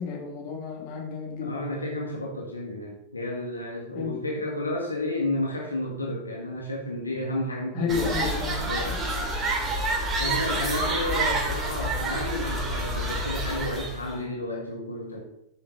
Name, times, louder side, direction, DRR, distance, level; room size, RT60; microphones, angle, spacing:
voice 1, 0.0-1.6 3.9-4.2 7.7-9.0, left 5 dB, 45° left, 0 dB, 3.0 m, -31 dB
voice 2, 1.4-9.3 10.2-15.2, left 1 dB, 80° left, -1 dB, 1.7 m, -32 dB
sound 1, 7.9-14.1, right 2 dB, 25° right, 2.4 m, -28 dB
9.4 x 6.8 x 5.4 m, 0.82 s
figure-of-eight pair, 90°, 0 cm